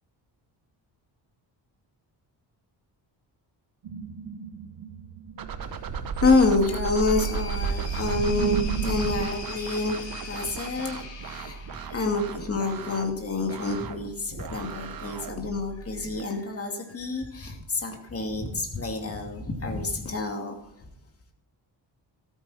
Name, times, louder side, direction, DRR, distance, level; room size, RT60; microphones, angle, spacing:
sound 1, 3.8-9.3, right 7 dB, 80° right, 1.3 m, -31 dB
sound 2, 5.4-16.2, right 6 dB, 50° right, 1.1 m, -40 dB
voice 1, 5.6-11.6 11.9-20.5, left 3 dB, 30° left, 3 dB, 2.5 m, -28 dB
sound 3, 6.1-12.4, left 5 dB, 70° left, 3.1 m, -42 dB
13.5 x 13.5 x 4.3 m, 0.74 s
cardioid pair, 130°, 44 cm